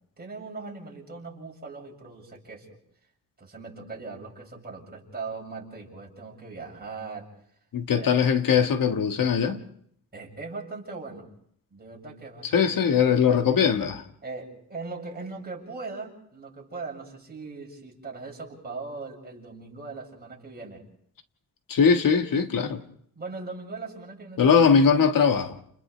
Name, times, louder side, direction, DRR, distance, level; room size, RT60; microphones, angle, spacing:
voice 1, 0.2-2.8 3.4-7.3 8.0-8.2 10.1-11.3 11.7-13.0 13.3-13.6 14.2-20.8 23.1-24.4, right 3 dB, 30° right, 6.6 m, -39 dB
voice 2, 7.7-9.6 12.5-14.0 21.7-22.8 24.4-25.6, left 6 dB, 70° left, 1.7 m, -21 dB
30.0 x 29.5 x 3.3 m
cardioid pair, 100°, 34 cm